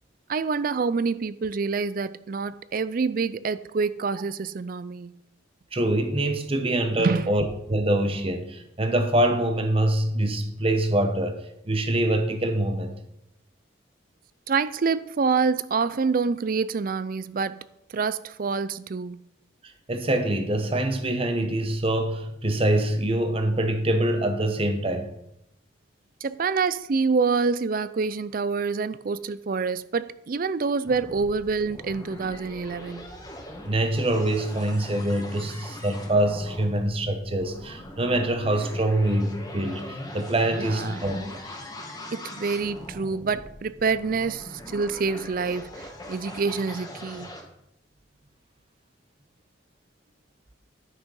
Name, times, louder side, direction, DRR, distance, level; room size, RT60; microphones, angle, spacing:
voice 1, 0.3-5.1 7.0-7.3 14.5-17.6 17.9-19.2 26.2-33.1 40.6-41.0 42.1-47.3, right 4 dB, 45° right, 0.4 m, -27 dB
voice 2, 5.7-11.4 11.7-12.9 19.9-25.1 33.6-41.2, right 1 dB, 30° right, 1.0 m, -24 dB
sound 1, 30.8-47.4, left 1 dB, 20° left, 1.6 m, -41 dB
11.0 x 6.3 x 5.4 m
head